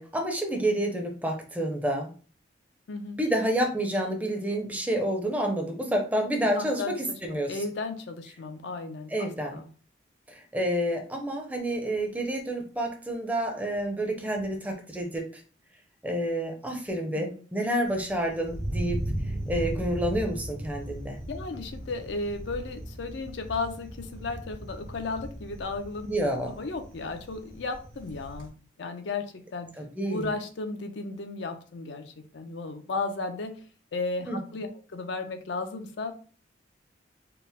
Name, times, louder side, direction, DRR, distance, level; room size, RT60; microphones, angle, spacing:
voice 1, 0.0-2.1 3.2-7.6 9.1-9.6 10.3-15.2 16.0-19.0 19.5-21.2 26.1-26.6 29.8-30.3 34.3-34.4, right 1 dB, 10° right, 2 dB, 0.6 m, -29 dB
voice 2, 2.9-3.2 6.6-9.7 17.1-17.4 21.3-26.1 26.5-28.5 28.8-29.7 30.1-33.6 33.9-36.1, left 3 dB, 70° left, 7 dB, 0.5 m, -34 dB
Thunder, 17.9-28.5, right 1 dB, 75° right, 1.5 m, -37 dB
4.5 x 2.0 x 3.5 m, 0.40 s
head